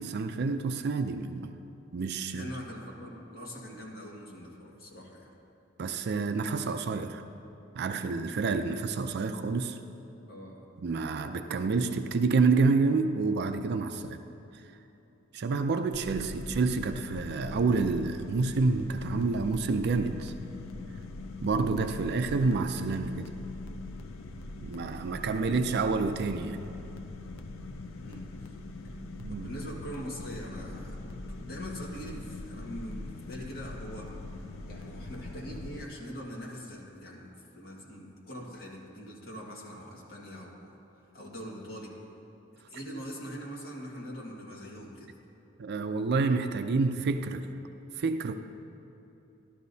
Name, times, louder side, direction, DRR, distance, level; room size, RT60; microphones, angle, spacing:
voice 1, 0.0-1.6 1.9-2.5 5.8-7.2 7.7-9.8 10.8-14.2 14.5-14.6 15.3-20.3 21.4-23.3 24.6-26.6 29.2-29.6 45.6-47.5 48.0-48.4, right 4 dB, 55° right, 8 dB, 0.4 m, -28 dB
voice 2, 2.3-5.3 10.3-10.7 28.0-28.3 29.3-31.0 31.3-42.0 42.7-45.2, equal, 50° left, -3 dB, 1.9 m, -43 dB
sound 1, 15.9-35.8, left 2 dB, 80° left, 0.6 m, -42 dB
13.5 x 12.0 x 2.7 m, 3.0 s
head